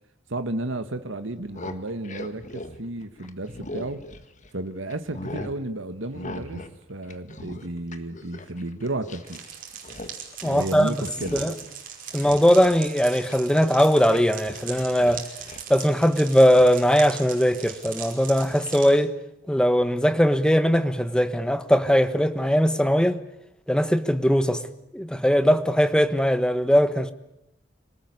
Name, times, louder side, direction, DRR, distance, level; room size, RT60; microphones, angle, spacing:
voice 1, 0.3-4.0 4.5-9.4 10.4-11.5, right 2 dB, 75° right, 1.5 m, -33 dB
sound 1, 1.3-4.6 4.9-5.6 6.1-6.8 7.0-9.5 9.7-10.1 10.4-10.7 11.1-11.7 12.1-14.2 14.5-15.7 16.5-16.7, left 2 dB, 40° left, 1.7 m, -39 dB
sound 2, 9.3-18.9, right 7 dB, 45° right, 5.2 m, -40 dB
voice 2, 10.4-11.1 11.3-11.5 12.1-15.2 15.7-19.1 19.5-23.2 23.7-24.6 24.9-27.1, equal, 5° left, 1.2 m, -20 dB
26.0 x 18.5 x 9.7 m
head